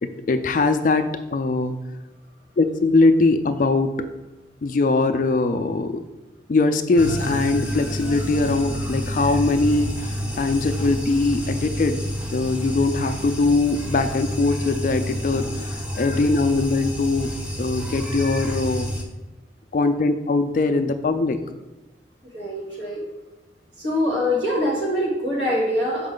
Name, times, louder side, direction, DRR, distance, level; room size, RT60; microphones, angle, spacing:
voice 1, 0.0-1.8 2.6-4.0 4.6-6.0 6.5-12.0 12.3-17.3 17.6-18.9 19.7-21.4, left 3 dB, 45° left, 8 dB, 0.3 m, -21 dB
sound 1, 6.9-19.0, equal, 5° right, 0.7 m, -29 dB
voice 2, 22.3-23.0 23.8-26.1, left 1 dB, 75° right, -4 dB, 2.2 m, -24 dB
6.3 x 5.0 x 3.8 m, 1.1 s
head